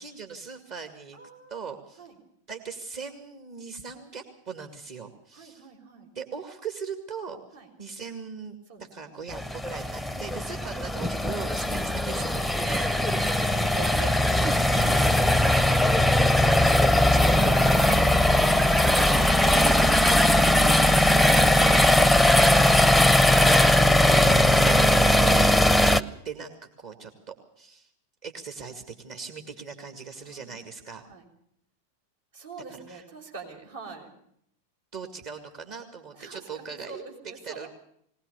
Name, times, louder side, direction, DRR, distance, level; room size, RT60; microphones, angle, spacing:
voice 1, 0.0-1.2 1.5-2.1 2.5-5.7 6.1-7.4 7.8-12.9 14.4-14.5 14.8-23.1 23.4-26.5 26.8-27.9 28.2-31.0 32.9-33.0 34.9-37.7, right 5 dB, 45° right, 6 dB, 2.2 m, -40 dB
voice 2, 1.1-1.7 2.0-2.1 5.3-6.1 7.5-7.7 8.7-9.1 10.0-10.3 12.1-14.2 14.8-15.0 30.1-30.6 31.1-31.3 32.3-34.1 36.1-37.7, right 4 dB, 65° right, 0 dB, 5.1 m, -44 dB
sugarcane machine, 9.3-26.0, left 1 dB, ahead, 0.7 m, -20 dB
20.0 x 19.5 x 6.9 m, 0.69 s
figure-of-eight pair, 90°, 0 cm